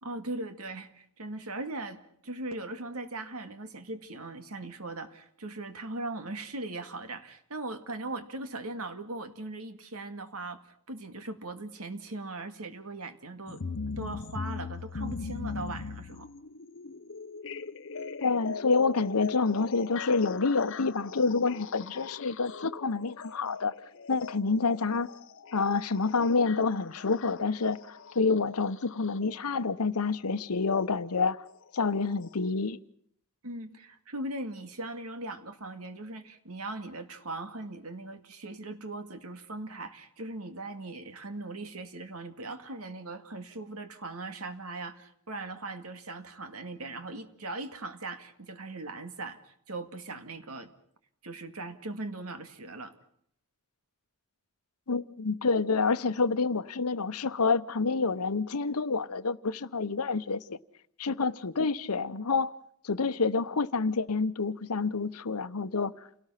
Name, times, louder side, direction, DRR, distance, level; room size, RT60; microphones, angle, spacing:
voice 1, 0.0-10.6 10.9-13.6 14.0-16.3 33.4-50.7 51.2-53.0, right 2 dB, 75° right, 2.2 m, -39 dB
sound 1, 13.5-29.4 30.6-30.7 31.5-31.6 32.2-32.3, left 4 dB, 60° left, 0.8 m, -40 dB
voice 2, 18.2-23.7 24.1-25.1 25.5-31.4 31.7-32.8 54.9-60.6 61.0-62.5 62.8-65.9, left 4 dB, 85° left, 0.9 m, -28 dB
29.0 x 18.0 x 5.8 m
head